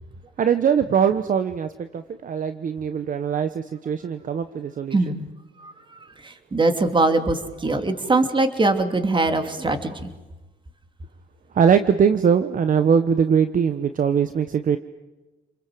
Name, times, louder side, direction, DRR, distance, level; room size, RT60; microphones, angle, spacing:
voice 1, 0.4-5.0 11.5-14.8, right 7 dB, 50° right, 10 dB, 1.1 m, -21 dB
voice 2, 4.9-5.2 5.6-10.1, right 2 dB, 30° right, 7 dB, 3.0 m, -22 dB
29.0 x 22.0 x 7.8 m, 1.1 s
cardioid pair, 85°, 17 cm